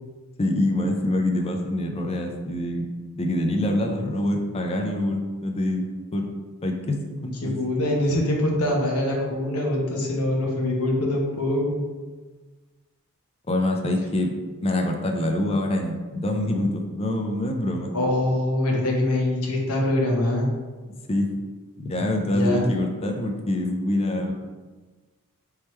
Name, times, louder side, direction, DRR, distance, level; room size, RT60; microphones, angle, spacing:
voice 1, 0.4-2.8 3.2-5.9 6.1-6.3 6.6-7.5 13.5-14.3 14.6-17.9 21.1-21.3 21.8-24.3, left 1 dB, 25° left, 3 dB, 0.5 m, -25 dB
voice 2, 7.4-11.8 17.9-20.5 22.3-22.7, left 1 dB, 75° left, -1 dB, 1.0 m, -23 dB
3.5 x 3.1 x 4.3 m, 1.3 s
head